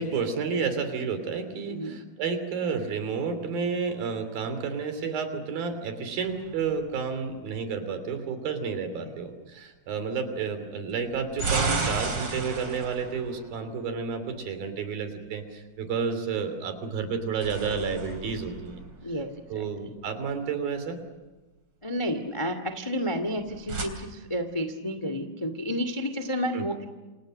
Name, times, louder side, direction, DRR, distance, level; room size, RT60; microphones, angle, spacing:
voice 1, 0.0-18.8 19.5-21.0 26.5-26.6, right 5 dB, 65° right, 9 dB, 4.6 m, -31 dB
voice 2, 1.7-2.0 9.0-9.2 19.0-19.7 21.8-26.8, equal, 35° left, 8 dB, 0.4 m, -31 dB
sound 1, 6.3-7.3 10.9-14.2 17.0-19.5 23.3-23.8, right 4 dB, 35° right, 4.0 m, -33 dB
28.5 x 27.0 x 6.5 m, 1.2 s
omnidirectional pair, 4.5 m